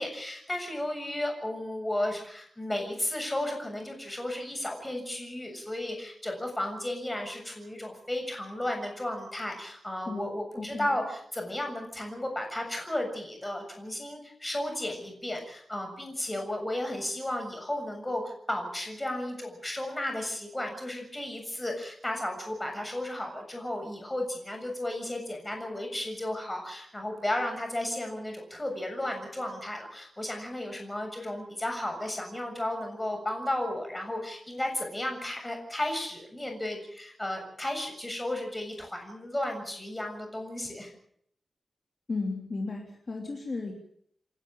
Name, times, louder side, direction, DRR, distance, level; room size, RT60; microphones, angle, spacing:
voice 1, 0.0-40.9, left 1 dB, 15° left, 3 dB, 7.1 m, -34 dB
voice 2, 10.6-10.9 42.1-43.7, left 3 dB, 40° left, 1 dB, 3.1 m, -34 dB
28.5 x 12.0 x 8.9 m, 0.65 s
wide cardioid pair, 150°, 0 cm